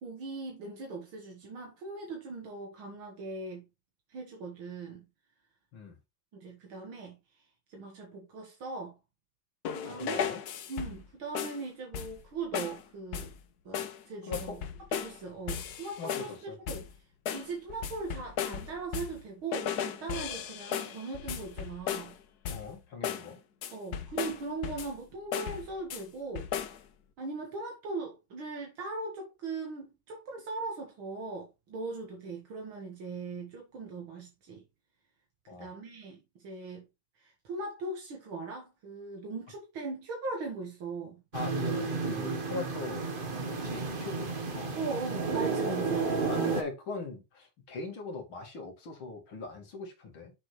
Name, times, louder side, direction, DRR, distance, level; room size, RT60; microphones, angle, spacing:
voice 1, 0.0-3.7 4.1-5.1 6.3-7.2 7.7-9.0 9.7-10.4 10.7-13.3 13.7-14.6 14.9-16.9 17.3-22.2 23.7-26.5 27.2-34.6 35.5-36.9 37.2-41.2 44.8-46.1, right 3 dB, 80° right, 2.6 m, -39 dB
sound 1, 9.6-11.1 11.3-11.6 11.9-12.3 12.5-12.8 13.1-13.4 13.7-14.0 14.3-15.2 15.5-16.4 16.7-16.9 17.3-19.2 19.5-22.2 22.4-22.7 23.0-23.3 23.6-25.0 25.3-26.0 26.3-26.8, left 8 dB, 60° left, 1.2 m, -36 dB
voice 2, 9.9-10.4 14.3-14.6 16.0-16.6 22.5-23.4 35.5-35.7 41.3-43.1 43.5-44.8 46.2-50.3, left 3 dB, 80° left, 3.0 m, -40 dB
sound 2, 41.3-46.6, right 4 dB, 30° right, 1.2 m, -32 dB
7.5 x 6.7 x 3.2 m
omnidirectional pair, 2.2 m